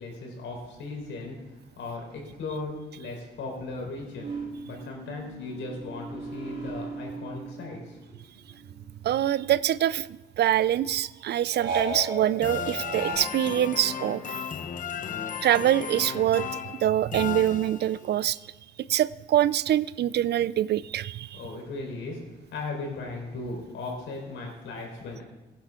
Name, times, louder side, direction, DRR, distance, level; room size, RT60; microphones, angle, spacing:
voice 1, 0.0-1.4 1.8-4.3 4.7-8.4 21.3-22.2 22.5-25.2, left 3 dB, 75° left, 0 dB, 4.3 m, -37 dB
sound 1, 4.2-8.1 8.4-10.0 11.5-13.1, right 3 dB, 75° right, 4.2 m, -36 dB
voice 2, 9.0-14.2 15.4-18.4 18.9-21.4, right 12 dB, 55° right, 18 dB, 0.4 m, -25 dB
sound 2, 12.4-18.1, left 7 dB, 40° left, 0.9 m, -35 dB
17.0 x 10.0 x 3.7 m, 1.1 s
cardioid pair, 90°, 20 cm